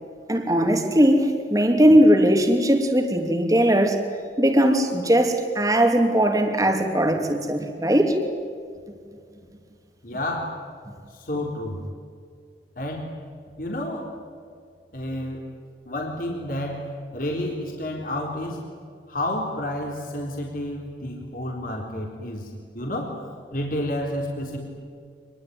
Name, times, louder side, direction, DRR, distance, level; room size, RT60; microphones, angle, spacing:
voice 1, 0.3-4.0 4.4-8.2, equal, 20° right, 4 dB, 2.9 m, -19 dB
voice 2, 10.0-10.6 11.1-11.8 12.8-13.1 13.6-14.1 14.9-15.4 15.9-16.9 17.1-18.6 19.1-23.2 23.5-24.6, left 1 dB, 50° left, 0 dB, 3.8 m, -30 dB
26.5 x 21.5 x 9.5 m, 2.2 s
head